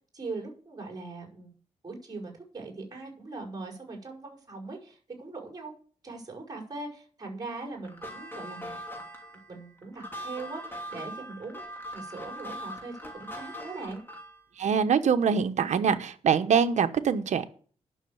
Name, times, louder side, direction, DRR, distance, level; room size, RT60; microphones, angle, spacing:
voice 1, 0.1-1.5 1.8-5.7 6.0-9.0 9.5-11.6 11.9-14.0, right 3 dB, 35° right, 1 dB, 5.3 m, -40 dB
sound 1, 7.8-14.4, equal, 15° left, 2.9 m, -41 dB
voice 2, 14.6-17.4, right 7 dB, 75° right, 9 dB, 1.0 m, -24 dB
11.0 x 6.5 x 7.1 m, 0.43 s
cardioid pair, 100°, 12 cm